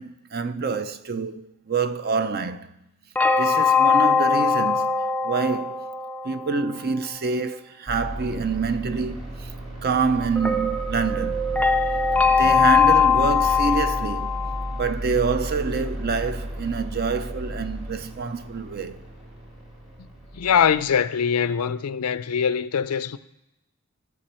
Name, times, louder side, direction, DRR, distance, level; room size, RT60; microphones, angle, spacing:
voice 1, 0.0-2.7 3.3-5.0 5.2-5.9 6.2-9.5 9.8-11.5 12.2-14.4 14.7-19.0, right 4 dB, 45° right, 0.5 m, -26 dB
sound 1, 3.2-6.8 10.4-14.9, left 5 dB, 5° left, 0.4 m, -21 dB
Heavy machinery at work, 7.9-21.0, equal, 30° right, 2.6 m, -33 dB
voice 2, 12.1-12.7 20.3-23.2, left 7 dB, 90° left, 0.5 m, -23 dB
13.0 x 6.9 x 4.3 m
head